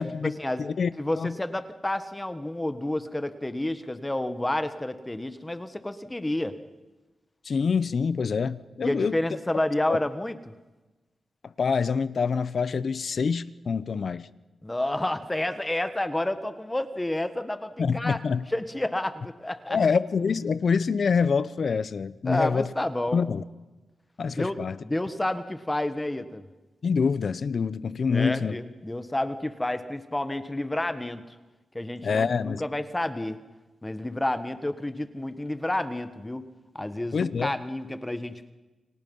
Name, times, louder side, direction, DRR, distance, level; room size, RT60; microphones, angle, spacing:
voice 1, 0.0-0.3 0.6-0.9 1.2-1.4 7.4-9.2 9.9-10.0 11.6-14.3 17.8-18.4 19.7-22.7 23.1-23.4 24.2-24.8 26.8-28.6 32.0-32.6 37.1-37.5, left 5 dB, 60° left, 0.8 m, -26 dB
voice 2, 1.0-6.6 8.8-10.4 14.6-18.2 18.5-19.8 22.2-23.2 24.3-26.4 28.1-31.2 31.7-33.4 33.8-36.4 36.7-38.5, left 1 dB, 15° left, 1.4 m, -30 dB
30.0 x 24.5 x 5.5 m
wide cardioid pair, 110°, 0 cm